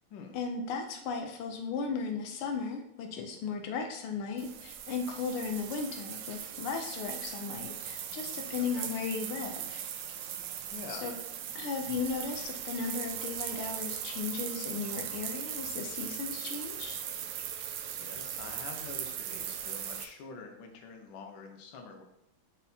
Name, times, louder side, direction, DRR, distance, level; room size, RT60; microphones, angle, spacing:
voice 1, 0.3-9.8 10.9-11.1 11.5-17.0, left 5 dB, 90° left, 4 dB, 1.6 m, -36 dB
sound 1, 4.4-20.1, right 9 dB, 75° right, 1.4 m, -39 dB
voice 2, 8.6-8.9 10.7-11.1 17.9-22.0, left 4 dB, 70° left, 3 dB, 1.6 m, -46 dB
9.4 x 4.1 x 2.7 m, 0.81 s
omnidirectional pair, 2.3 m